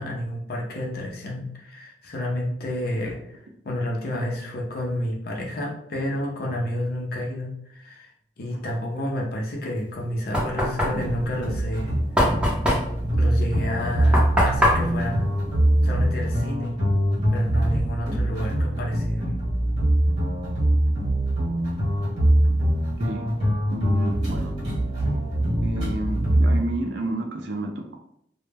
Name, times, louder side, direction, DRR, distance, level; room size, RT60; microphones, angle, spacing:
voice 1, 0.0-3.4 3.6-8.1 8.4-12.0 12.3-12.5 13.2-15.3 15.8-16.8 17.3-19.4, left 1 dB, 60° left, 0 dB, 0.6 m, -30 dB
Knock, 9.8-16.3, equal, 5° right, 0.6 m, -25 dB
sound 1, 10.9-26.6, right 1 dB, 40° right, 1.1 m, -23 dB
voice 2, 23.7-24.6 25.6-28.0, right 1 dB, 75° right, 3 dB, 0.4 m, -30 dB
2.1 x 2.1 x 3.3 m, 0.73 s
head